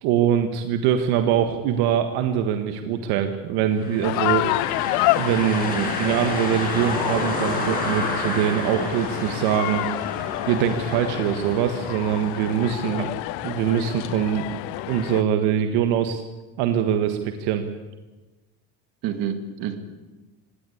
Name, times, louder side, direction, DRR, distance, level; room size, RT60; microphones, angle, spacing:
voice 1, 0.0-4.5 5.2-9.9 10.5-13.1 13.4-16.2 16.6-17.6, right 9 dB, 80° right, 7 dB, 1.6 m, -23 dB
sound 1, 3.7-13.5, left 2 dB, 25° left, 6.0 m, -31 dB
sound 2, 4.0-15.2, left 21 dB, 80° left, 0.6 m, -29 dB
voice 2, 19.0-19.8, right 10 dB, 60° right, 8 dB, 2.2 m, -28 dB
19.5 x 17.5 x 8.5 m, 1.2 s
cardioid pair, 170°, 38 cm